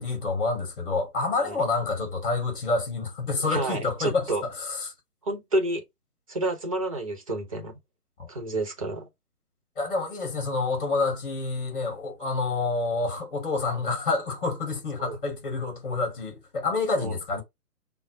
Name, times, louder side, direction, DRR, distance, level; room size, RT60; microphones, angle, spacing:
voice 1, 0.0-4.9 8.2-8.3 9.8-17.4, left 3 dB, 35° left, 2.2 m, -28 dB
voice 2, 3.5-4.4 5.2-5.8 6.3-7.8 8.3-9.0 15.0-15.2 16.9-17.2, right 2 dB, 20° right, 0.8 m, -29 dB
5.5 x 2.0 x 4.3 m
figure-of-eight pair, 145°, 47 cm